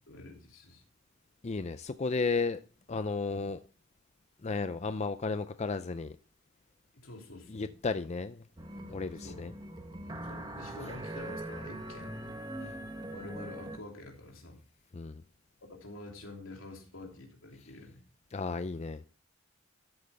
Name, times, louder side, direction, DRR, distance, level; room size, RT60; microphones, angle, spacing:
voice 1, 0.1-0.8 6.9-7.7 9.2-9.5 10.2-12.2 13.1-14.6 15.6-18.0, left 2 dB, 85° left, 3.1 m, -47 dB
voice 2, 1.4-2.6 2.9-3.6 4.4-6.2 7.5-8.4 8.9-9.5 14.9-15.2 18.3-19.0, left 4 dB, 35° left, 0.5 m, -33 dB
sound 1, 8.6-13.8, right 1 dB, 20° right, 1.4 m, -42 dB
13.0 x 7.9 x 3.4 m
head